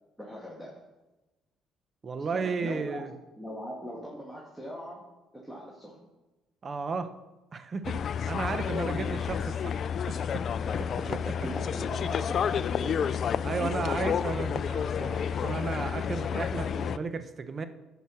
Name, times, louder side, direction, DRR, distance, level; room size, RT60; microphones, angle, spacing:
voice 1, 0.2-0.8 2.3-3.0 3.3-6.0 8.7-9.2 10.6-13.1, equal, ahead, -4 dB, 2.0 m, -41 dB
voice 2, 2.0-3.1 6.6-7.1 7.5-9.8 10.1-10.4 11.1-11.5 13.0-13.1 13.4-17.6, right 4 dB, 40° right, 10 dB, 0.9 m, -34 dB
sound 1, 7.8-17.0, left 7 dB, 55° left, 0.3 m, -30 dB
10.5 x 5.2 x 6.3 m, 1.1 s
supercardioid pair, 80°, 0 cm